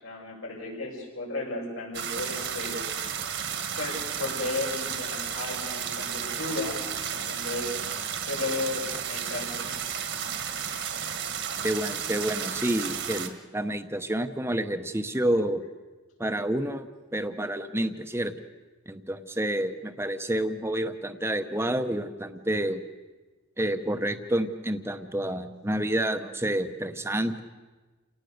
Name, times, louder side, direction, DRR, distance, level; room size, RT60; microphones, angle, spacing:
voice 1, 0.0-2.8 3.8-6.8 7.1-7.7 8.2-9.7 11.5-11.6, left 2 dB, 80° left, -2 dB, 7.1 m, -34 dB
sound 1, 1.9-13.3, right 7 dB, 55° right, 1.7 m, -33 dB
voice 2, 11.6-15.6 16.2-16.9 17.1-18.3 18.9-22.8 23.6-27.4, right 1 dB, 10° right, 9 dB, 0.9 m, -29 dB
29.0 x 18.5 x 6.7 m, 1.3 s
head